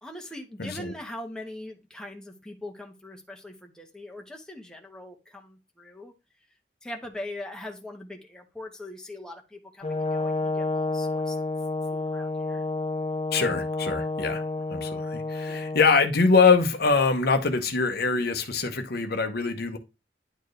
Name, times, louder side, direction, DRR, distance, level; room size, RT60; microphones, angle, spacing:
voice 1, 0.0-6.1 6.8-11.5 11.9-12.6 15.5-15.6, left 1 dB, 5° left, 1.3 m, -41 dB
voice 2, 0.6-0.9 13.3-19.8, left 4 dB, 60° left, 1.0 m, -23 dB
Brass instrument, 9.8-15.9, left 2 dB, 40° left, 0.8 m, -30 dB
10.0 x 4.4 x 3.3 m
head